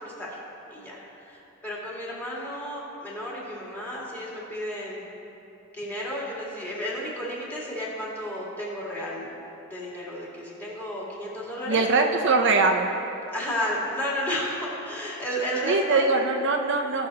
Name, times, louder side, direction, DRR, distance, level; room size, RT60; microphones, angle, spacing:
voice 1, 0.0-0.4 0.7-5.0 5.7-9.3 9.7-11.8 13.3-16.1, equal, 10° left, -6 dB, 2.1 m, -32 dB
voice 2, 11.7-12.9 15.6-17.1, right 3 dB, 60° right, 3 dB, 0.6 m, -22 dB
18.5 x 6.5 x 2.9 m, 3.0 s
head